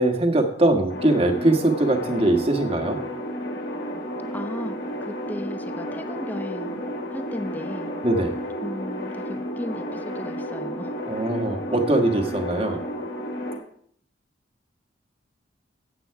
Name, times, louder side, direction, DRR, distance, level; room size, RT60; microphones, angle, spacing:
voice 1, 0.0-3.0 8.0-8.3 11.1-12.8, right 1 dB, 30° right, 4 dB, 1.5 m, -21 dB
sound 1, 0.9-13.6, equal, 65° left, 3.4 m, -32 dB
voice 2, 4.3-6.8 7.1-7.9 8.6-10.9, left 1 dB, 10° left, 8 dB, 0.8 m, -35 dB
13.5 x 8.9 x 4.7 m, 0.64 s
head